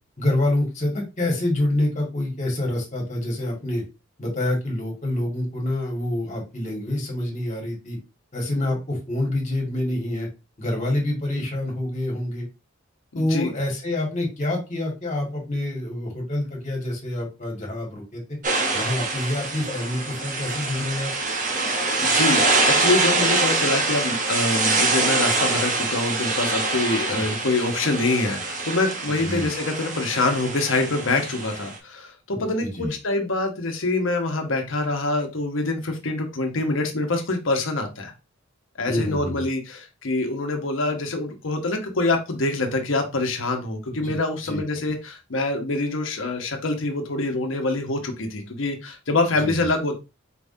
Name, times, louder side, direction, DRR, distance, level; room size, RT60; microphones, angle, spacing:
voice 1, 0.2-3.8 4.2-8.0 8.3-10.3 10.6-12.4 13.1-18.2 18.7-21.1 27.1-27.2 29.2-29.5 32.3-32.9 38.9-39.4 43.9-44.2 44.4-44.6 49.4-49.7, left 1 dB, 35° left, -1 dB, 1.7 m, -27 dB
voice 2, 13.1-13.5 22.0-38.1 38.8-50.0, left 2 dB, 80° left, 4 dB, 1.0 m, -25 dB
sound 1, 18.4-31.7, right 3 dB, 40° right, 0.9 m, -24 dB
4.6 x 3.6 x 2.7 m, 0.27 s
head